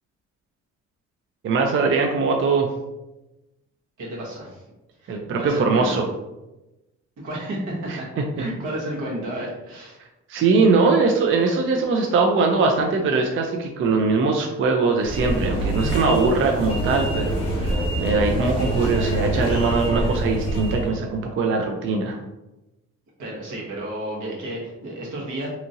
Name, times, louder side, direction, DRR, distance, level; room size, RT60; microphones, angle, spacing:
voice 1, 1.4-2.7 5.1-6.0 7.9-8.0 10.3-22.2, right 4 dB, 45° right, 2 dB, 0.4 m, -21 dB
voice 2, 4.0-4.6 5.0-6.0 7.2-8.1 8.4-10.0 23.2-25.5, right 1 dB, 80° right, -4 dB, 1.1 m, -32 dB
sound 1, 15.0-20.9, right 1 dB, 20° left, 1.0 m, -25 dB
2.8 x 2.5 x 2.7 m, 0.99 s
cardioid pair, 90°, 30 cm